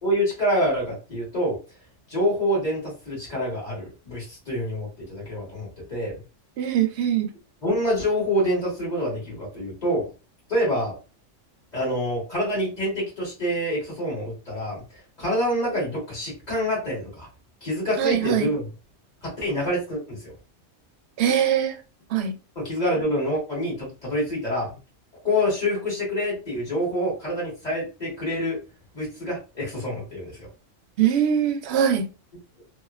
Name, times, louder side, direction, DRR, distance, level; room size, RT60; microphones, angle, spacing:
voice 1, 0.0-1.6 2.1-6.2 7.6-10.1 10.5-10.9 11.7-17.3 17.6-18.7 19.2-20.3 22.5-24.8 25.2-28.6 28.9-30.5, equal, 35° left, 1.6 m, -26 dB
voice 2, 6.6-7.3 18.0-18.5 21.2-21.7 22.1-22.3 31.0-32.0, right 9 dB, 65° right, 0.7 m, -22 dB
2.9 x 2.3 x 2.3 m
omnidirectional pair, 1.3 m